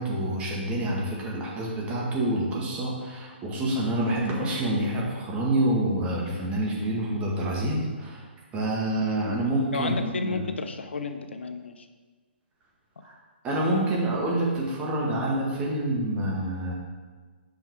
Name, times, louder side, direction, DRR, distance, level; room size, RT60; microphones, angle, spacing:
voice 1, 0.0-8.2 8.5-10.4 13.0-13.1 13.4-16.7, right 1 dB, 20° right, -4 dB, 1.8 m, -27 dB
voice 2, 9.7-11.9, left 4 dB, 80° left, 8 dB, 0.7 m, -32 dB
5.8 x 5.3 x 4.7 m, 1.4 s
hypercardioid pair, 140°, 6 cm